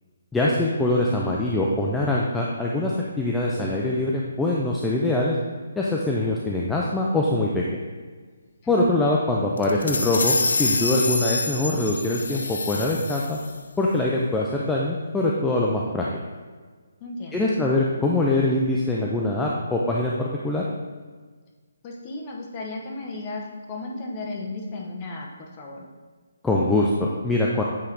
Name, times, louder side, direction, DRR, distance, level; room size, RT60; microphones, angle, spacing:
voice 1, 0.3-2.9 3.2-5.4 5.8-7.8 8.7-13.4 13.8-16.1 17.3-20.6 26.4-27.6, left 2 dB, 5° left, -4 dB, 0.3 m, -23 dB
voice 2, 1.1-1.4 8.6-9.0 17.0-17.5 21.8-25.9, left 2 dB, 20° left, 0 dB, 0.7 m, -35 dB
sound 1, 9.6-13.6, left 3 dB, 75° left, 0.6 m, -27 dB
8.4 x 3.3 x 3.8 m, 1.5 s
hypercardioid pair, 175°, 0 cm